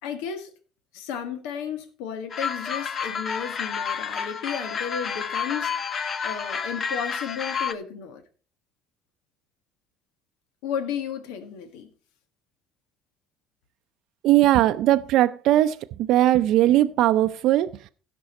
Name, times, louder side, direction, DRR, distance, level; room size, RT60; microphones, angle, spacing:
voice 1, 0.0-0.5 0.9-5.7 6.2-8.2 10.6-11.9, left 8 dB, 90° left, 1.6 m, -33 dB
sound 1, 2.3-7.7, left 6 dB, 40° left, 0.9 m, -30 dB
voice 2, 14.2-15.8 16.1-17.9, right 14 dB, 70° right, 0.5 m, -19 dB
16.0 x 6.2 x 4.2 m
cardioid pair, 110°, 0 cm